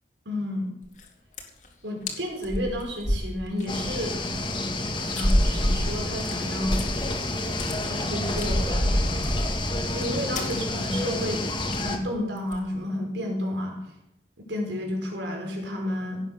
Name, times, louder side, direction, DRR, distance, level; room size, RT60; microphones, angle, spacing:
voice 1, 0.2-0.7 1.8-4.2 5.0-6.8 7.8-9.4 9.9-11.4 11.8-13.8 14.5-16.2, left 1 dB, 90° right, 1 dB, 4.8 m, -31 dB
sound 1, 0.8-1.1 1.3-1.7 2.1-2.2 2.4-4.0 4.3-4.4 5.2-7.2 7.4-7.7 8.2-10.0 10.3-10.5 10.8-11.0 11.3-11.4 11.7-11.9 12.4-12.6, equal, 45° left, 2.4 m, -27 dB
sound 2, 3.7-12.0, left 2 dB, 25° left, 1.8 m, -30 dB
17.0 x 8.4 x 6.6 m, 0.82 s
head